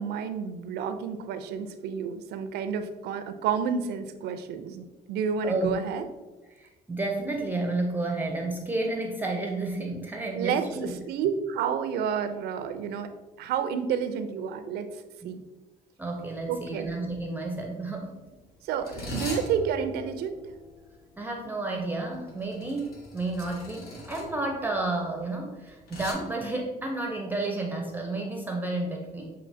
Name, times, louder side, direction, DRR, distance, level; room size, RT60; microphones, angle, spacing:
voice 1, 0.0-6.0 10.3-13.1 13.4-14.9 15.2-15.4 16.5-16.9 18.6-20.4, right 7 dB, 85° right, 9 dB, 0.5 m, -30 dB
voice 2, 5.4-5.8 6.5-11.0 15.2-15.4 16.0-18.2 21.2-29.3, right 2 dB, 10° right, 1 dB, 0.5 m, -31 dB
sound 1, 16.1-16.3 16.5-16.9 17.6-26.1, left 1 dB, 70° left, 1.1 m, -42 dB
6.7 x 2.7 x 2.6 m, 1.2 s
cardioid pair, 115°, 16 cm